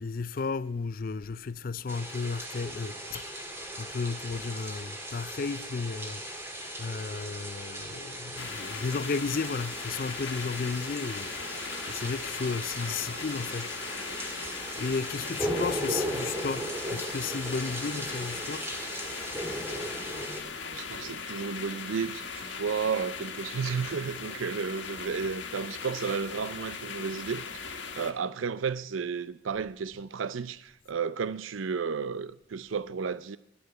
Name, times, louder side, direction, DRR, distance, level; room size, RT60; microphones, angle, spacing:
voice 1, 0.0-6.5 6.8-13.8 14.2-18.7, left 4 dB, 45° left, 0.4 m, -34 dB
sound 1, 1.9-20.4, right 1 dB, 15° right, 1.9 m, -37 dB
sound 2, 8.4-28.1, left 5 dB, 65° left, 1.5 m, -39 dB
voice 2, 20.6-33.4, right 6 dB, 85° right, 0.5 m, -33 dB
11.5 x 9.5 x 9.1 m
head